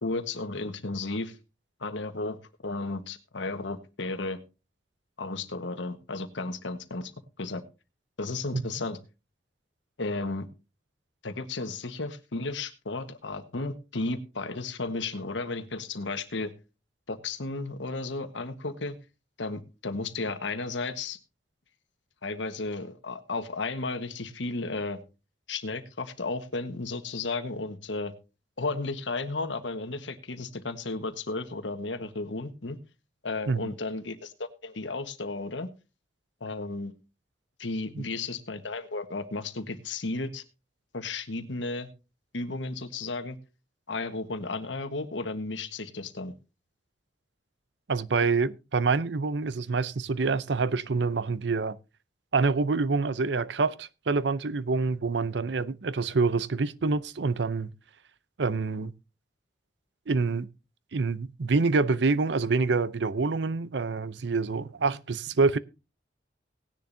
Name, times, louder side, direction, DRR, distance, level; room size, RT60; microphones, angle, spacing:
voice 1, 0.0-1.4 1.8-4.4 5.2-7.1 7.4-7.6 8.2-9.0 10.0-10.5 11.2-16.5 17.1-19.0 19.4-21.2 22.2-25.0 25.5-28.1 28.6-32.8 33.2-35.7 36.4-36.9 37.6-40.4 40.9-41.9 42.3-43.4 43.9-46.3, left 3 dB, 85° left, 1.4 m, -34 dB
voice 2, 47.9-51.8 52.3-57.7 58.4-58.9 60.1-60.5 60.9-65.6, right 4 dB, 70° right, 0.6 m, -26 dB
18.0 x 10.5 x 2.7 m
head